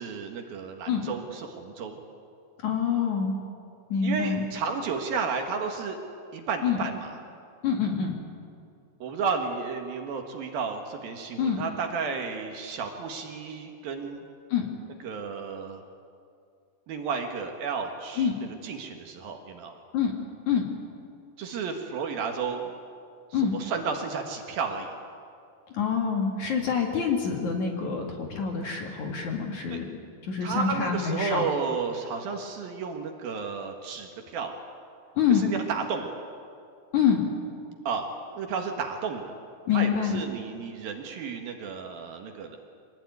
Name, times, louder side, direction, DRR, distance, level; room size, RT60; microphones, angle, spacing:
voice 1, 0.0-2.0 4.0-6.0 6.3-7.2 9.0-14.2 15.0-15.8 16.9-19.8 21.4-22.7 23.3-25.0 29.7-29.8 30.4-34.5 35.3-36.1 37.8-38.1 38.3-39.3 39.7-42.6, right 5 dB, 65° right, 4 dB, 3.1 m, -32 dB
voice 2, 2.6-3.4 3.9-4.4 6.6-6.8 7.6-8.1 11.4-11.7 14.5-14.7 18.2-18.4 19.9-20.1 20.5-20.6 23.3-23.6 25.7-29.8 30.3-31.4 35.2-35.5 36.9-37.3 39.7-40.2, left 7 dB, 50° left, 2 dB, 3.0 m, -26 dB
25.5 x 19.0 x 9.5 m, 2.3 s
omnidirectional pair, 5.1 m